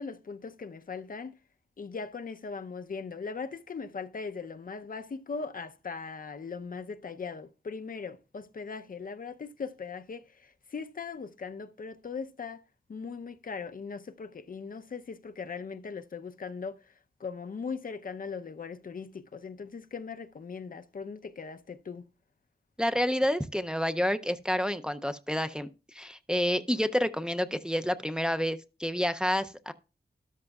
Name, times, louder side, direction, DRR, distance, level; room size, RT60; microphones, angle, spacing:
voice 1, 0.0-1.4 1.8-12.6 12.9-16.8 17.2-22.1, left 5 dB, 55° left, 0.7 m, -39 dB
voice 2, 22.8-29.7, equal, 5° right, 0.5 m, -29 dB
13.0 x 12.0 x 2.3 m
wide cardioid pair, 105°, 17 cm